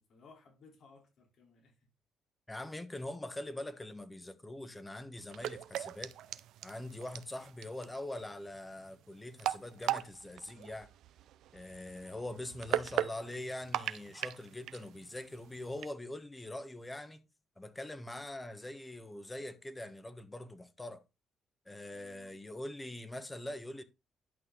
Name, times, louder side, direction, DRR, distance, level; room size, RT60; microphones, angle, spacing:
voice 1, 0.0-1.9 12.3-13.4 21.9-22.4, left 4 dB, 65° left, 3.8 m, -61 dB
voice 2, 2.5-6.1 6.6-10.9 11.5-17.2 17.6-21.0 21.6-23.8, left 1 dB, 15° left, 1.3 m, -43 dB
sound 1, 5.2-15.9, right 12 dB, 80° right, 0.5 m, -39 dB
11.0 x 5.9 x 3.8 m
cardioid pair, 90°, 0 cm